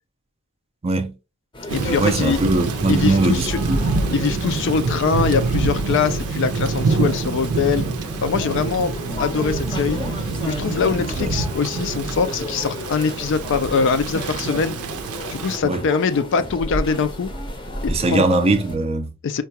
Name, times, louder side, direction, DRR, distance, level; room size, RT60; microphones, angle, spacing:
voice 1, 0.8-1.1 2.0-3.9 11.2-11.3 15.6-15.8 17.9-19.1, right 2 dB, 25° right, 0.4 m, -20 dB
sound 1, 1.5-18.8, left 1 dB, 20° left, 0.6 m, -34 dB
voice 2, 1.7-2.4 2.9-3.6 4.1-7.9 8.2-10.0 10.4-14.8 15.3-17.3 17.8-18.2 19.2-19.4, left 5 dB, 55° left, 0.4 m, -22 dB
Thunder / Rain, 1.7-15.6, right 3 dB, 85° right, 0.5 m, -26 dB
sound 2, 8.9-10.4 11.2-11.3 11.6-12.2 14.1-16.0 16.9-17.6, left 2 dB, 80° left, 1.1 m, -41 dB
4.6 x 2.2 x 2.8 m
head